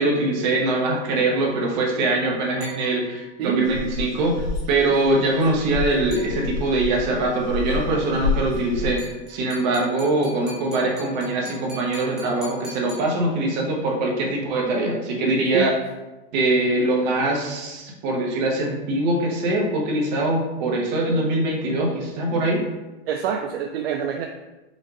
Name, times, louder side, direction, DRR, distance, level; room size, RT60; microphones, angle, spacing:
voice 1, 0.0-15.7 16.3-22.6, right 2 dB, 40° right, -1 dB, 1.0 m, -23 dB
sound 1, 2.6-3.4 6.1-6.9 9.0-13.7, left 1 dB, ahead, 0.5 m, -43 dB
voice 2, 3.4-3.7 15.2-15.7 23.1-24.3, right 8 dB, 60° right, 4 dB, 0.4 m, -26 dB
sound 2, 3.7-8.9, left 4 dB, 65° left, 1.1 m, -29 dB
5.1 x 2.5 x 3.9 m, 1.1 s
supercardioid pair, 165°, 33 cm